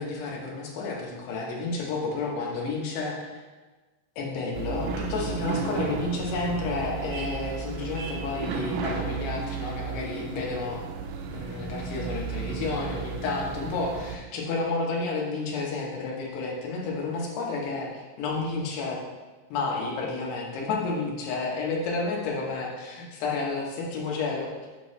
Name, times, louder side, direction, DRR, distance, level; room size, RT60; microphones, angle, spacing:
voice 1, 0.0-3.4 4.2-10.8 11.3-19.0 19.5-24.5, left 3 dB, 85° left, -2 dB, 3.2 m, -31 dB
sound 1, 4.5-14.2, right 5 dB, 80° right, 2.3 m, -33 dB
8.3 x 5.5 x 3.2 m, 1.3 s
omnidirectional pair, 4.7 m